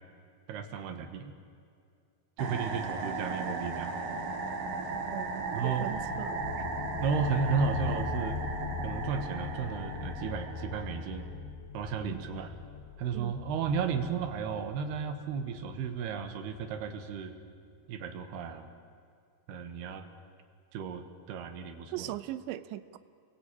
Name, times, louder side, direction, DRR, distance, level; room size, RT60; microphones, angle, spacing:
voice 1, 0.5-1.3 2.4-4.0 5.5-5.9 7.0-8.4 8.8-11.3 11.7-12.6 13.0-17.3 17.9-18.7 19.5-20.1 20.7-22.1, right 6 dB, 70° right, 8 dB, 3.4 m, -34 dB
sound 1, 2.4-11.2, right 3 dB, 50° right, 3.0 m, -36 dB
voice 2, 5.1-6.4 12.0-12.2 13.1-13.3 21.9-23.0, right 14 dB, 85° right, 14 dB, 3.1 m, -39 dB
sound 2, 5.7-17.1, left 6 dB, 85° left, 4.1 m, -41 dB
29.0 x 22.0 x 8.8 m, 2.4 s
omnidirectional pair, 5.1 m